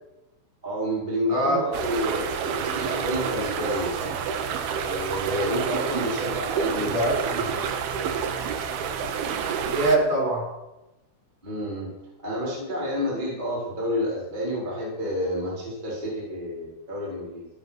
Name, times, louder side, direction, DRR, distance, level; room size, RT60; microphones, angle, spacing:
voice 1, 0.6-4.2 4.8-7.0 11.4-11.9 12.2-17.5, equal, 10° right, -6 dB, 4.0 m, -29 dB
voice 2, 1.3-1.6 6.8-7.8 9.6-10.5, right 1 dB, 45° right, -2 dB, 6.9 m, -24 dB
sound 1, 1.7-10.0, right 7 dB, 70° right, 2.8 m, -29 dB
17.0 x 9.1 x 5.8 m, 0.95 s
omnidirectional pair, 5.0 m